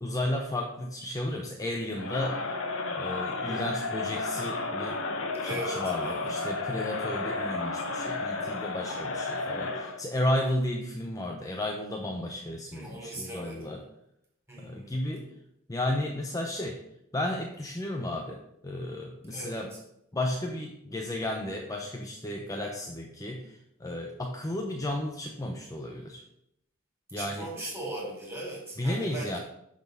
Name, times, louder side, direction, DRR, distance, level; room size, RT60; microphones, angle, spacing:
voice 1, 0.0-2.5 3.0-5.0 5.4-13.8 14.6-15.3 15.7-16.8 17.1-19.7 20.1-26.2 27.1-27.5 28.8-29.4, left 1 dB, 15° left, 1 dB, 0.7 m, -33 dB
Crowd, 1.9-10.0, left 3 dB, 65° left, 1.0 m, -32 dB
voice 2, 5.4-6.3 12.7-13.7 14.5-14.9 19.3-19.8 27.1-29.4, right 1 dB, 15° right, -3 dB, 3.3 m, -39 dB
11.0 x 4.2 x 5.4 m, 0.79 s
head